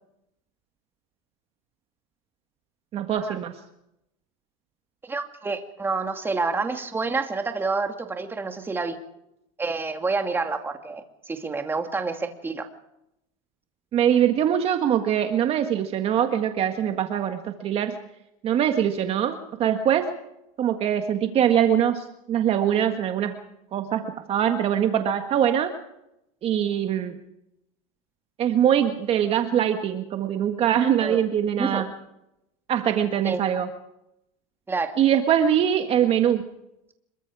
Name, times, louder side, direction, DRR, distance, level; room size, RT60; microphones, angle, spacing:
voice 1, 2.9-3.5 13.9-18.0 18.4-20.1 20.6-23.4 23.7-25.7 26.4-27.1 28.4-31.9 32.7-33.7 35.0-36.4, right 9 dB, 35° right, 6 dB, 1.6 m, -23 dB
voice 2, 5.0-9.0 9.6-12.7 31.0-31.2 31.6-31.8 33.2-33.4 34.7-35.0, right 4 dB, 10° right, 5 dB, 2.2 m, -28 dB
26.5 x 23.0 x 4.9 m, 0.83 s
supercardioid pair, 130°, 17 cm